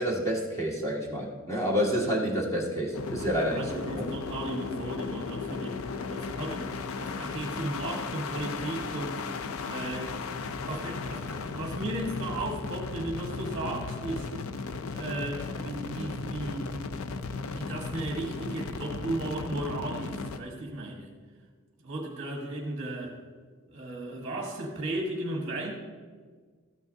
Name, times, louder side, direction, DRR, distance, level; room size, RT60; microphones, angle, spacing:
voice 1, 0.0-4.0, equal, 15° left, -3 dB, 1.9 m, -29 dB
sound 1, 2.9-20.4, left 4 dB, 75° left, 0.5 m, -36 dB
voice 2, 3.5-5.8 6.1-9.2 9.7-10.2 10.7-14.3 14.9-21.1 21.8-23.2 23.7-25.7, right 1 dB, 35° right, 0 dB, 1.3 m, -35 dB
13.5 x 9.2 x 2.7 m, 1.5 s
head